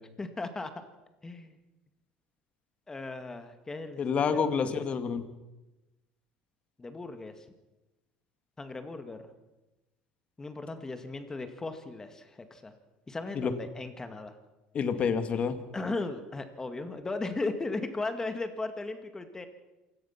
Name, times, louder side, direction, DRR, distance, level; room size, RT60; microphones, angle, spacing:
voice 1, 0.2-0.7 1.2-1.6 2.9-4.9 6.8-7.4 8.6-9.2 10.4-12.7 13.1-14.3 15.7-19.5, left 3 dB, 15° left, 8 dB, 2.1 m, -37 dB
voice 2, 4.0-5.3 13.3-13.5 14.7-15.6, left 6 dB, 40° left, 9 dB, 2.1 m, -28 dB
27.0 x 17.0 x 5.9 m, 1.0 s
supercardioid pair, 105°, 3 cm